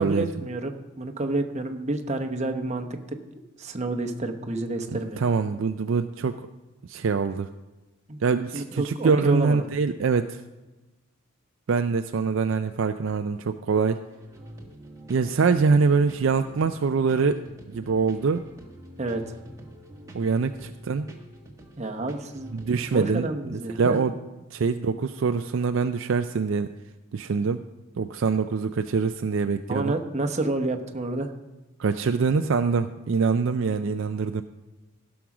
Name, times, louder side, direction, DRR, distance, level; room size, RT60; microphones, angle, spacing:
voice 1, 0.0-2.9 3.6-5.3 8.1-8.2 8.5-9.6 19.0-19.4 21.8-22.6 22.9-24.0 29.7-31.3, right 2 dB, 30° right, 4 dB, 0.9 m, -29 dB
voice 2, 4.9-6.5 6.9-7.5 8.2-10.4 11.7-14.0 15.1-18.4 20.1-21.1 22.5-24.1 24.5-26.7 27.1-27.6 28.0-30.0 31.8-34.4, right 5 dB, 60° right, 8 dB, 0.4 m, -24 dB
sound 1, 14.1-23.1, right 1 dB, 15° right, 1.3 m, -46 dB
15.0 x 6.2 x 6.0 m, 1.1 s
head